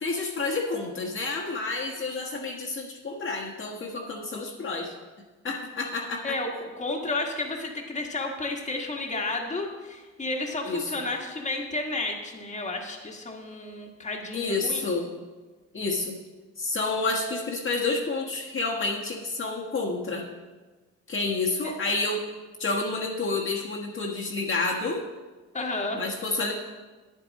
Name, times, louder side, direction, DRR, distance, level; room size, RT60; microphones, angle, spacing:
voice 1, 0.0-4.9 5.4-6.4 10.6-10.9 14.3-15.1 15.7-16.1 16.6-20.2 21.1-22.2 22.6-25.1 25.9-26.5, left 3 dB, 40° left, -2 dB, 1.4 m, -29 dB
voice 2, 6.8-14.8 21.6-21.7 25.5-26.0, left 2 dB, 25° left, 1 dB, 1.5 m, -32 dB
9.5 x 8.5 x 4.1 m, 1.3 s
cardioid pair, 90°, 30 cm